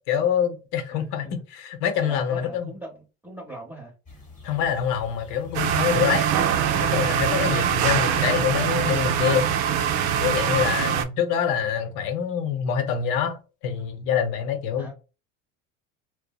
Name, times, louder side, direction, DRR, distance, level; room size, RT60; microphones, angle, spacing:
voice 1, 0.1-2.7 4.4-6.3 6.8-9.5 10.2-13.4 13.6-14.9, left 8 dB, 65° left, 0.7 m, -25 dB
voice 2, 0.9-1.3 2.0-3.9 14.8-14.9, right 1 dB, 5° right, 0.7 m, -40 dB
sound 1, 4.1-10.7, left 2 dB, 20° left, 0.9 m, -46 dB
sound 2, 5.5-11.0, right 9 dB, 60° right, 0.5 m, -23 dB
2.7 x 2.0 x 2.2 m
hypercardioid pair, 80°, 40 cm